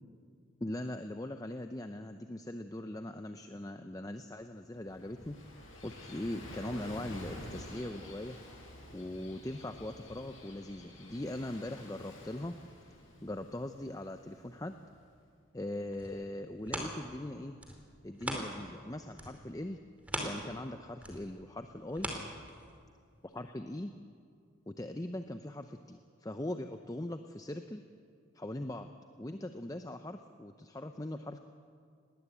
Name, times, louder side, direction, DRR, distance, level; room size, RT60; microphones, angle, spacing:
voice 1, 0.6-5.4 5.8-8.4 8.9-12.5 13.2-14.7 15.5-17.6 18.0-19.8 20.2-22.1 23.2-23.9 24.7-27.8 28.3-28.9 29.2-31.4, left 1 dB, 15° left, 7 dB, 0.6 m, -40 dB
Gull seagull / Waves surf, 4.5-15.1, left 1 dB, 75° left, 7.8 m, -50 dB
sound 1, 15.7-18.8 19.1-22.9 23.4-23.5, right 1 dB, 5° right, 2.6 m, -41 dB
20.0 x 19.0 x 8.3 m, 2.3 s
head